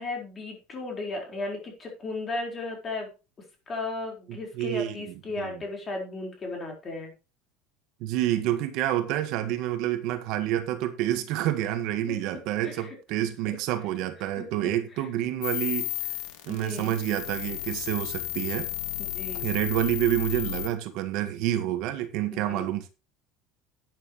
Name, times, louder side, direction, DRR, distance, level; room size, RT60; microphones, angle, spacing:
voice 1, 0.0-3.1 3.7-7.1 12.1-12.2 12.6-13.0 14.4-15.1 16.5-16.9 19.0-19.5 22.3-22.7, left 2 dB, 20° left, 4.5 m, -35 dB
voice 2, 4.6-5.6 8.0-15.9 16.5-18.7 19.4-22.9, right 13 dB, 55° right, 1.6 m, -28 dB
sound 1, 15.4-20.7, left 13 dB, 85° left, 2.5 m, -33 dB
12.0 x 9.8 x 3.2 m
cardioid pair, 165°, 0 cm